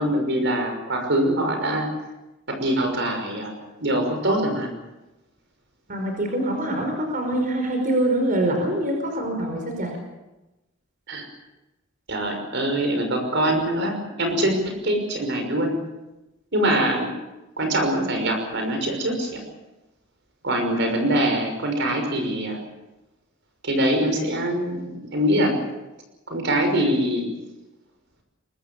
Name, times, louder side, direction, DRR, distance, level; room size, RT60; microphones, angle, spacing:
voice 1, 0.0-1.9 2.5-3.5 3.8-4.7 11.1-11.3 12.1-15.7 16.5-17.1 17.6-19.4 20.4-22.6 23.6-25.5 26.3-27.3, right 1 dB, 60° right, 4 dB, 6.0 m, -23 dB
voice 2, 5.9-9.9, right 1 dB, 45° right, 3 dB, 5.0 m, -24 dB
24.0 x 22.5 x 7.2 m, 1.0 s
head